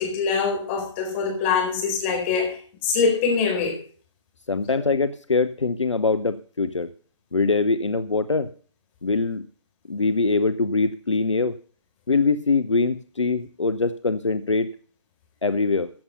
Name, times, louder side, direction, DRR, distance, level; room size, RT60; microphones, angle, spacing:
voice 1, 0.0-2.6 2.8-3.8, left 5 dB, 25° left, 4.2 m, -23 dB
voice 2, 4.5-6.9 7.3-8.5 9.0-9.4 9.9-11.6 12.1-14.7 15.4-15.9, left 3 dB, 75° left, 0.8 m, -23 dB
15.0 x 7.1 x 5.4 m
figure-of-eight pair, 140°, 16 cm